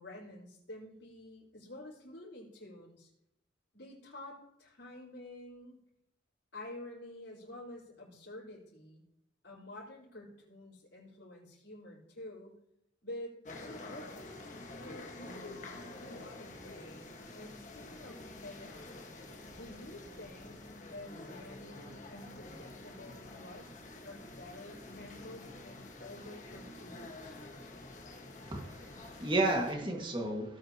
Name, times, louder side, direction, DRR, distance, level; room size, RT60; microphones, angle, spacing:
voice 1, 0.0-3.1 3.7-5.8 6.5-9.0 9.4-12.6 13.0-14.4 14.8-19.0 19.5-20.6 20.9-27.4, left 1 dB, 75° left, -9 dB, 4.2 m, -49 dB
sound 1, 13.4-29.7, left 2 dB, 40° left, 1.6 m, -48 dB
voice 2, 28.4-30.6, right 2 dB, 25° right, 1 dB, 1.8 m, -32 dB
17.0 x 9.0 x 2.9 m, 0.80 s
head